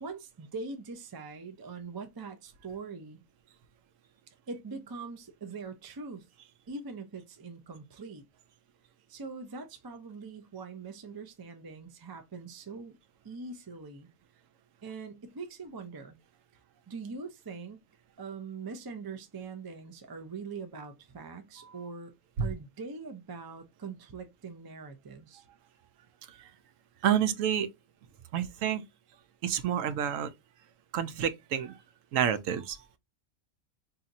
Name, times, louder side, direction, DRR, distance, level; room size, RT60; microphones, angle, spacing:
voice 1, 0.0-3.2 4.5-6.3 6.7-8.2 9.1-13.0 13.2-14.1 14.8-16.2 16.9-17.8 18.2-22.1 22.4-25.4, right 4 dB, 35° right, 0.3 m, -42 dB
voice 2, 27.0-27.7 28.3-28.8 29.4-30.3 30.9-31.8 32.1-32.8, right 9 dB, 80° right, 1.0 m, -28 dB
4.0 x 2.8 x 2.5 m
omnidirectional pair, 1.3 m